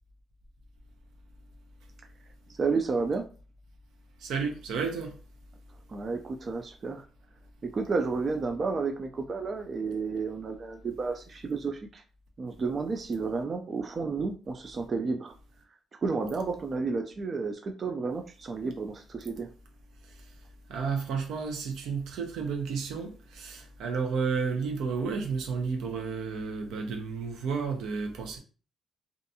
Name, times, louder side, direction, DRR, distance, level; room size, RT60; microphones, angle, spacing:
voice 1, 2.5-3.3 5.9-7.0 7.6-12.0 12.4-15.3 16.0-19.5, right 4 dB, 40° right, 0.3 m, -31 dB
voice 2, 4.2-5.2 20.7-28.4, right 5 dB, 85° right, 0.6 m, -32 dB
2.6 x 2.2 x 2.6 m
cardioid pair, 90°, 0 cm